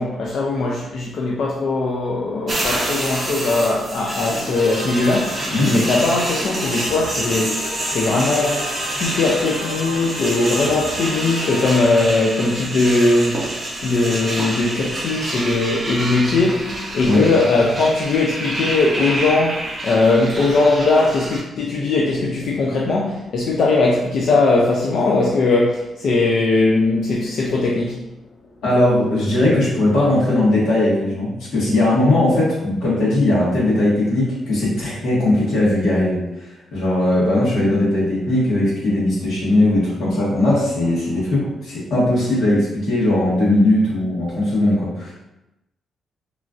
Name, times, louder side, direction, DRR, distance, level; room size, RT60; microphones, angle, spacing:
voice 1, 0.0-28.0, left 3 dB, 55° left, -3 dB, 0.3 m, -19 dB
sound 1, 2.5-21.4, right 1 dB, 25° right, 0.5 m, -28 dB
sound 2, 4.0-12.5, left 1 dB, 30° left, 0.7 m, -32 dB
voice 2, 28.6-45.1, left 1 dB, 90° left, -8 dB, 1.4 m, -18 dB
3.0 x 2.5 x 2.4 m, 0.94 s
wide cardioid pair, 170°, 0 cm